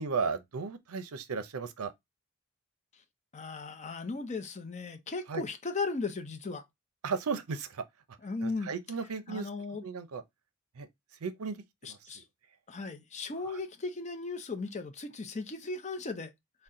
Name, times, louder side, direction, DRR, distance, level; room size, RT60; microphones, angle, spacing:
voice 1, 0.0-1.9 5.3-5.4 7.0-7.8 8.4-9.5 9.8-10.2 10.8-10.9 11.2-11.6 11.9-12.0 13.4-13.6, right 5 dB, 75° right, 0.5 m, -35 dB
voice 2, 3.3-6.6 8.2-8.7 9.3-9.8 11.8-12.2 12.7-16.3, left 3 dB, 30° left, 0.6 m, -36 dB
4.1 x 2.2 x 3.6 m
head